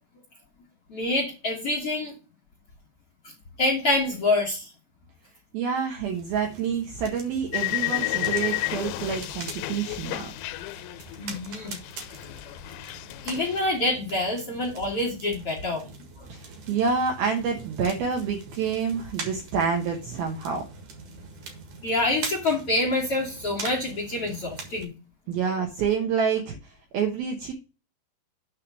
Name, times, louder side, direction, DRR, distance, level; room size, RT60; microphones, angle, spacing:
voice 1, 0.9-2.1 3.6-4.7 11.2-11.8 13.2-15.9 21.8-24.9, left 2 dB, 70° left, -1 dB, 1.3 m, -26 dB
voice 2, 5.5-10.3 16.3-20.6 25.3-27.5, right 6 dB, 80° right, 2 dB, 2.1 m, -28 dB
sound 1, 6.0-24.8, right 4 dB, 60° right, 2.2 m, -43 dB
sound 2, 7.5-11.5 11.7-13.6, left 18 dB, 85° left, 3.1 m, -31 dB
9.1 x 3.4 x 6.2 m, 0.32 s
omnidirectional pair, 5.9 m